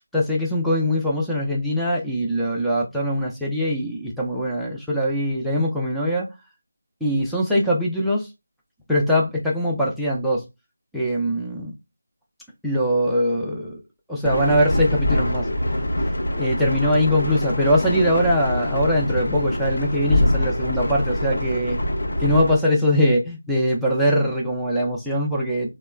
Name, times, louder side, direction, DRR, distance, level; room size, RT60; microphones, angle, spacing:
voice 1, 0.0-6.3 7.0-8.3 8.9-10.4 10.9-11.7 12.6-13.8 14.1-15.5 16.3-21.8 22.2-25.7, equal, ahead, 0.4 m, -22 dB
sound 1, 14.2-22.6, left 1 dB, 60° left, 0.6 m, -24 dB
2.9 x 2.1 x 2.3 m
figure-of-eight pair, 165°, 0 cm